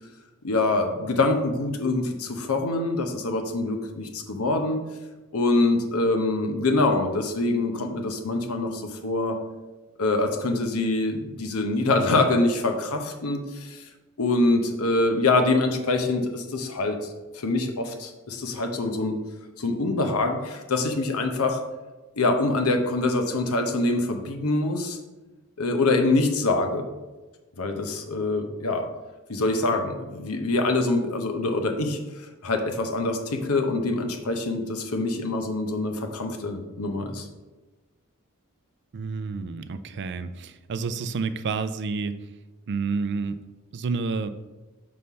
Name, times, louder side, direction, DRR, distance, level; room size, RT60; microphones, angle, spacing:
voice 1, 0.4-4.8 5.3-9.4 10.0-13.9 14.2-19.2 19.6-21.6 22.2-25.0 25.6-26.9 27.6-28.9 29.3-37.3, left 2 dB, 85° left, 5 dB, 0.8 m, -25 dB
voice 2, 38.9-42.2 42.7-43.4 43.7-44.3, right 4 dB, 55° right, 12 dB, 0.4 m, -29 dB
5.4 x 3.2 x 5.5 m, 1.2 s
head